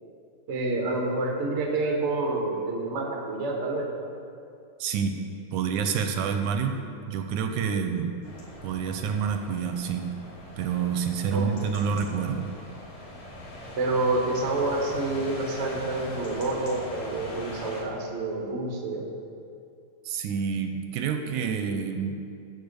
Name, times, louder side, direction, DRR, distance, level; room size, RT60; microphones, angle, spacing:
voice 1, 0.5-3.9 11.3-11.8 13.8-19.1, right 2 dB, 50° right, 0 dB, 0.8 m, -28 dB
voice 2, 4.8-5.2 5.5-6.8 7.1-8.2 8.6-10.1 10.6-12.5 20.1-22.2, right 6 dB, 80° right, 6 dB, 2.0 m, -28 dB
sound 1, 8.2-17.8, left 1 dB, 60° left, 2.9 m, -41 dB
14.0 x 5.0 x 6.7 m, 2.5 s
omnidirectional pair, 3.6 m